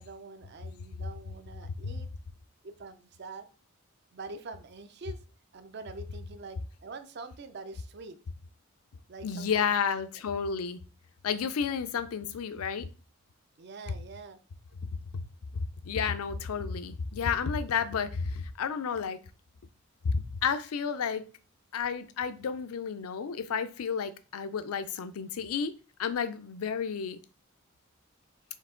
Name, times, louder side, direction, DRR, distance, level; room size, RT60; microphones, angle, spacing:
voice 1, 0.0-2.1 2.6-3.5 4.1-5.2 5.5-8.2 9.1-9.7 13.6-14.4, right 3 dB, 50° right, 10 dB, 0.4 m, -45 dB
voice 2, 9.2-10.8 11.2-12.9 15.1-15.2 15.5-19.2 20.0-21.2 21.7-25.7 26.0-27.2, left 6 dB, 85° left, 11 dB, 0.4 m, -31 dB
4.5 x 2.7 x 3.7 m, 0.35 s
head